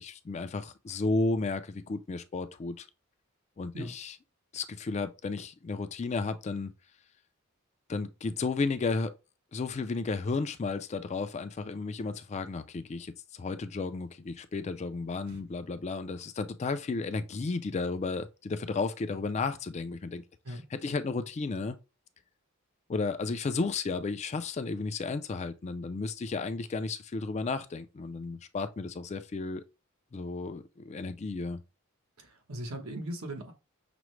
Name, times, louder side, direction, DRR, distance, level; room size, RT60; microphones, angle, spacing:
voice 1, 0.0-2.9 3.6-4.2 4.5-6.7 7.9-9.1 9.5-21.8 22.9-29.6 30.1-31.6, left 3 dB, 30° left, 0.3 m, -33 dB
voice 2, 20.4-20.9 32.2-33.5, right 1 dB, 80° right, 1.0 m, -39 dB
5.9 x 2.1 x 3.1 m
head